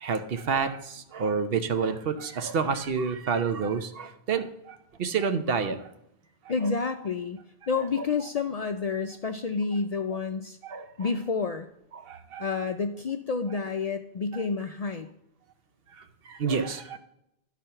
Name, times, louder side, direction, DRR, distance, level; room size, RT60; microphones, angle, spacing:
voice 1, 0.0-5.8 10.6-10.9 11.9-12.4 16.0-17.0, right 5 dB, 65° right, 9 dB, 0.9 m, -29 dB
voice 2, 6.5-7.4 7.7-10.6 11.0-11.7 12.4-15.1, left 4 dB, 55° left, 6 dB, 0.4 m, -29 dB
12.0 x 4.1 x 5.6 m, 0.80 s
omnidirectional pair, 1.1 m